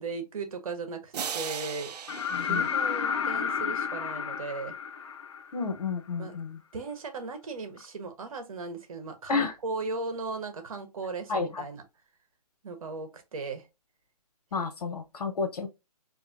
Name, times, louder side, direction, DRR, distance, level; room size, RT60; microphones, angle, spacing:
voice 1, 0.0-1.9 2.4-4.7 6.2-6.3 6.7-11.8 12.6-13.7, right 3 dB, 60° right, 1.2 m, -37 dB
sound 1, 1.1-3.8, right 7 dB, 80° right, 0.5 m, -38 dB
sound 2, 2.1-5.9 7.8-7.9, left 7 dB, 50° left, 0.5 m, -31 dB
voice 2, 2.3-2.7 5.5-6.6 9.3-9.5 11.3-11.6 14.5-15.7, left 4 dB, 75° left, 1.2 m, -31 dB
4.0 x 2.7 x 2.6 m
hypercardioid pair, 165°, 20 cm